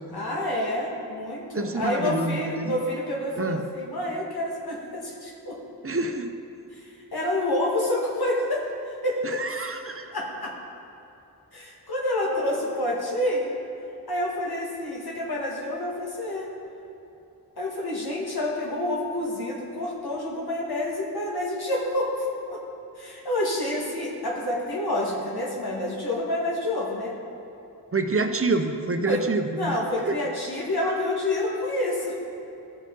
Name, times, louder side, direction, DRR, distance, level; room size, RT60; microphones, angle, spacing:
voice 1, 0.1-5.6 6.7-8.7 9.0-9.4 10.1-10.5 11.5-13.5 14.1-16.5 17.6-22.6 23.0-27.2 29.1-29.2 29.6-32.2, left 1 dB, 80° left, -3 dB, 1.7 m, -28 dB
voice 2, 1.5-2.8 3.4-3.6 5.8-6.3 9.2-10.1 27.9-30.1, right 3 dB, 35° right, 6 dB, 0.6 m, -27 dB
14.5 x 5.0 x 3.9 m, 2.9 s
wide cardioid pair, 60°, 38 cm